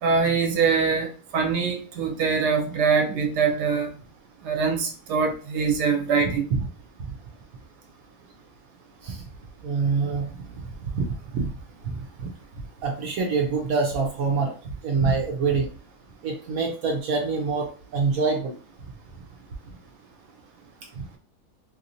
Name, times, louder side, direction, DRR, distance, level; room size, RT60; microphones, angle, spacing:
voice 1, 0.0-3.9 4.4-6.5, right 5 dB, 85° right, 3 dB, 1.3 m, -23 dB
voice 2, 9.6-10.6 10.9-11.5 11.9-12.3 12.8-14.5 14.8-15.7 16.2-18.6, right 4 dB, 70° right, 1 dB, 1.0 m, -25 dB
2.9 x 2.9 x 2.6 m, 0.39 s
omnidirectional pair, 1.7 m